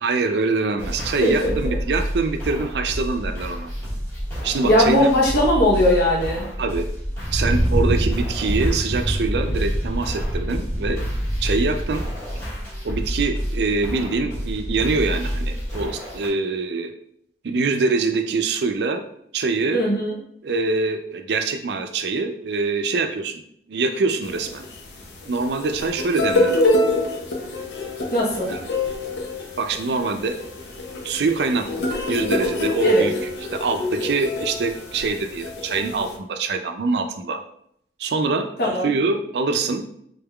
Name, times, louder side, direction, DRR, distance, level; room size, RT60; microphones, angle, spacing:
voice 1, 0.0-3.7 4.4-5.1 6.6-6.9 7.3-11.0 11.4-12.0 12.8-16.9 17.4-19.0 19.3-19.8 20.4-23.4 23.7-24.6 25.2-26.7 28.5-28.6 29.6-30.4 31.0-37.4 38.0-38.5 38.8-39.8, right 3 dB, 75° right, 6 dB, 0.4 m, -24 dB
sound 1, 0.8-16.3, equal, 15° left, 1.4 m, -29 dB
voice 2, 1.2-1.5 4.6-6.5 19.7-20.2 28.1-28.5 32.8-33.0 38.6-38.9, left 1 dB, 55° left, -4 dB, 0.9 m, -19 dB
Thunder, 7.2-12.7, right 1 dB, 15° right, 0.4 m, -25 dB
sound 2, 24.2-36.2, left 1 dB, 80° left, 0.6 m, -26 dB
3.8 x 3.5 x 2.3 m, 0.71 s
head